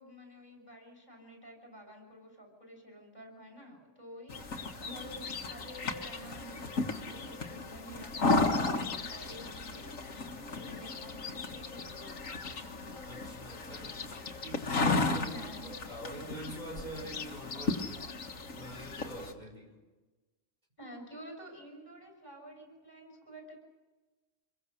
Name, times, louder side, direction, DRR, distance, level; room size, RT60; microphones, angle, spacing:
voice 1, 0.0-12.8 15.2-15.7 20.8-23.6, right 1 dB, 35° left, 2 dB, 6.5 m, -50 dB
sound 1, 4.3-19.3, left 3 dB, 80° left, 2.0 m, -35 dB
voice 2, 13.1-14.0 14.4-18.0 18.5-19.7, right 1 dB, 35° right, 1 dB, 5.6 m, -45 dB
27.0 x 22.0 x 6.6 m, 1.2 s
omnidirectional pair, 1.3 m